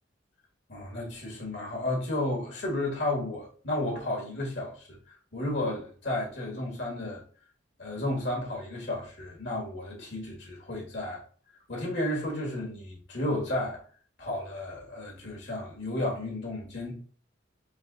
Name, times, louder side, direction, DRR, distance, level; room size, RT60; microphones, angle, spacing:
voice 1, 0.7-5.0 5.3-7.2 7.8-11.2 11.7-13.8 14.2-16.9, left 1 dB, 65° left, 1.4 m, -32 dB
4.0 x 2.9 x 3.8 m
head